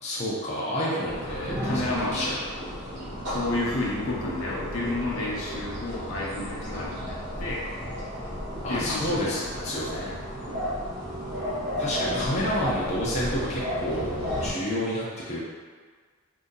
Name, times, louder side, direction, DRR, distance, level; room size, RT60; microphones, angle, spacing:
voice 1, 0.0-2.4 8.6-10.1 11.8-15.4, equal, 30° left, -7 dB, 0.6 m, -29 dB
voice 2, 0.8-1.1 1.6-2.3 3.3-7.6 8.7-10.2 10.5-10.6, left 2 dB, 70° left, -4 dB, 0.7 m, -31 dB
sound 1, 1.1-14.5, equal, 55° right, 1.2 m, -33 dB
2.7 x 2.7 x 3.8 m, 1.5 s
head